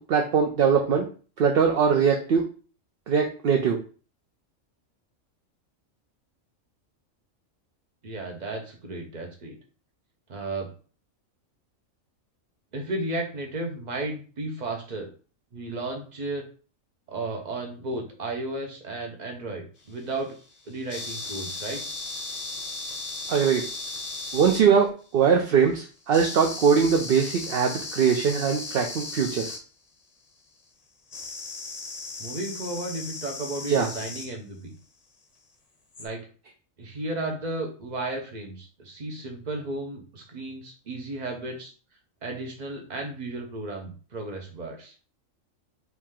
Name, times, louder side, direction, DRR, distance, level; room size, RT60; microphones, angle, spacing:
voice 1, 0.1-1.1 1.4-2.5 3.1-3.8 23.3-23.6 24.3-29.5 33.7-33.9, right 6 dB, 60° right, 2 dB, 0.7 m, -21 dB
voice 2, 8.0-9.6 10.3-10.7 12.7-15.1 15.5-16.4 17.1-20.3 20.7-21.8 32.2-34.7 36.0-36.3 36.8-41.7 42.2-44.9, right 2 dB, 35° right, 2 dB, 1.0 m, -34 dB
sound 1, 19.8-25.0 26.1-29.6 31.1-34.4 35.9-36.1, left 3 dB, 35° left, 0.8 m, -36 dB
4.7 x 2.8 x 3.6 m, 0.38 s
omnidirectional pair, 1.4 m